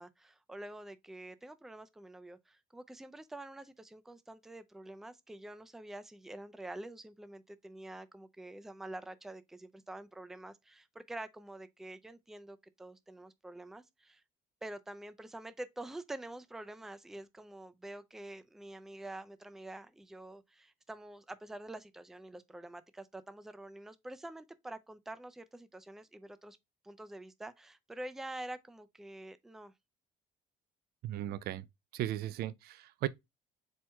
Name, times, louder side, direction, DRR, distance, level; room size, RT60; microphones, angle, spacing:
voice 1, 0.0-14.2 14.6-26.6 26.8-29.7, right 1 dB, ahead, 0.4 m, -47 dB
voice 2, 31.0-31.6 31.9-33.1, right 13 dB, 70° right, 0.4 m, -36 dB
4.5 x 2.1 x 4.5 m
cardioid pair, 110°, 17 cm